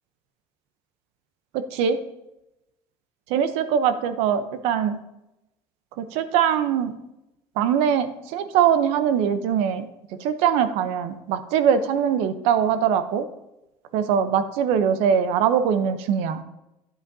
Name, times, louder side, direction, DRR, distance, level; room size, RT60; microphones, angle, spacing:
voice 1, 1.5-2.0 3.3-5.0 6.0-6.9 7.6-9.9 10.2-13.3 13.9-16.4, right 8 dB, 90° right, 11 dB, 0.7 m, -22 dB
9.8 x 8.2 x 2.7 m, 0.92 s
cardioid pair, 150°, 10 cm